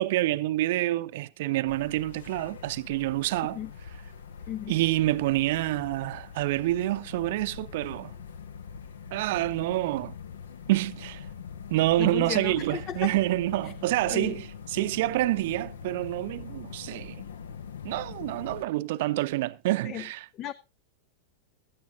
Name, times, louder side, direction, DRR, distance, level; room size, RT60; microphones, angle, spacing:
voice 1, 0.0-3.6 4.7-8.1 9.1-10.1 10.7-11.2 11.7-14.4 14.7-17.2 17.8-20.2, right 16 dB, 50° right, 0.6 m, -27 dB
sound 1, 1.7-18.6, left 6 dB, 65° left, 0.9 m, -43 dB
voice 2, 12.0-13.1 13.6-13.7 14.1-14.4 19.8-20.1 20.3-20.5, left 11 dB, 35° left, 0.5 m, -34 dB
16.5 x 13.0 x 2.6 m
figure-of-eight pair, 90°, 0 cm